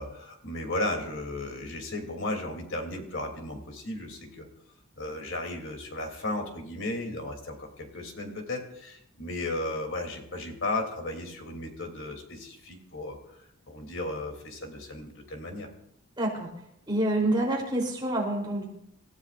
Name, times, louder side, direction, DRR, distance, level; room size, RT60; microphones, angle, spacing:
voice 1, 0.0-4.5 5.0-13.2 13.7-15.7, left 2 dB, 60° left, 3 dB, 3.0 m, -35 dB
voice 2, 16.2-16.5 16.9-18.7, right 1 dB, 20° right, -1 dB, 3.4 m, -27 dB
27.5 x 15.0 x 2.5 m, 0.75 s
head